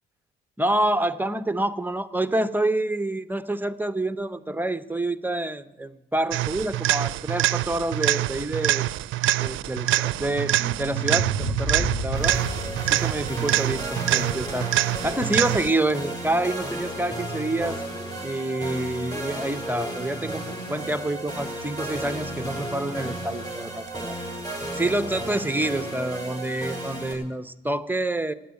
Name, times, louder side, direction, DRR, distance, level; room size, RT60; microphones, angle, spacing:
voice 1, 0.6-8.9 9.4-12.4 12.8-14.7 15.0-17.8 18.2-24.2 24.7-28.3, right 1 dB, 10° right, 12 dB, 0.7 m, -27 dB
factory machine, 6.3-15.9 23.9-24.0, right 15 dB, 75° right, 0.5 m, -25 dB
sound 1, 10.1-15.0, right 2 dB, 65° left, 5.9 m, -32 dB
sound 2, 12.1-27.1, right 1 dB, 20° left, 6.7 m, -34 dB
15.5 x 9.7 x 9.4 m, 0.98 s
cardioid pair, 90°, 20 cm